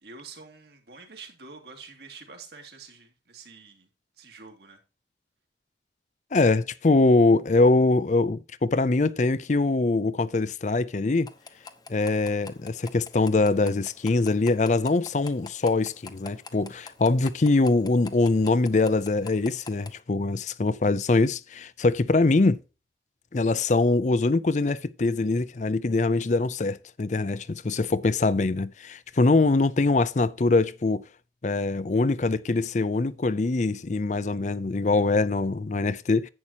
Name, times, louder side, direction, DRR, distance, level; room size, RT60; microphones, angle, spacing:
voice 1, 0.0-3.9 4.2-4.8, right 4 dB, 70° right, 2.7 m, -46 dB
voice 2, 6.3-11.3 11.9-22.6 23.3-31.0 31.4-36.3, left 3 dB, 40° left, 0.5 m, -23 dB
sound 1, 11.3-20.0, left 4 dB, 25° left, 0.9 m, -46 dB
11.0 x 8.7 x 2.9 m
head